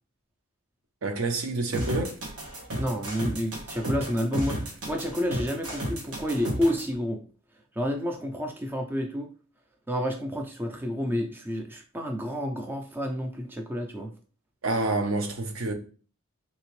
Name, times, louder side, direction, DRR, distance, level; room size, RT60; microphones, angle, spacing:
voice 1, 1.0-2.2 14.6-15.7, right 2 dB, 70° right, 0.6 m, -28 dB
sound 1, 1.7-6.8, right 1 dB, 90° right, 1.2 m, -32 dB
voice 2, 2.8-7.2 7.7-9.3 9.9-14.1, equal, 10° right, 0.3 m, -30 dB
3.4 x 2.8 x 3.1 m
head